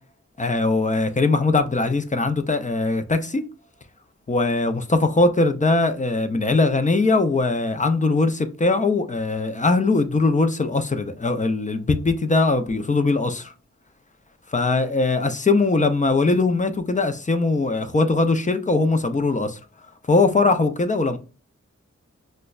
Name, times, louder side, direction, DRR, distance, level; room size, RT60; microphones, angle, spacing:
voice 1, 0.4-3.4 4.3-13.5 14.5-19.6 20.0-21.2, left 3 dB, 25° left, 0.4 m, -21 dB
5.0 x 2.1 x 2.3 m
wide cardioid pair, 85°, 29 cm